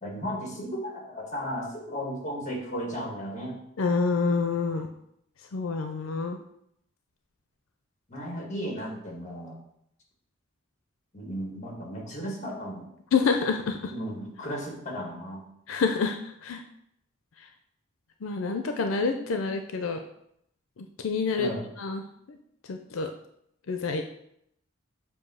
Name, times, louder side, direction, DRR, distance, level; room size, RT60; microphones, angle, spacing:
voice 1, 0.0-3.6 8.1-9.6 11.1-12.9 13.9-15.5 21.4-21.7, equal, 35° left, 0 dB, 1.6 m, -35 dB
voice 2, 3.8-4.9 5.5-6.4 13.1-13.9 15.7-16.6 18.2-20.0 20.8-21.5 21.8-22.4 22.7-23.1 23.7-24.0, left 4 dB, 90° left, 6 dB, 0.5 m, -27 dB
6.9 x 2.7 x 5.4 m, 0.74 s
head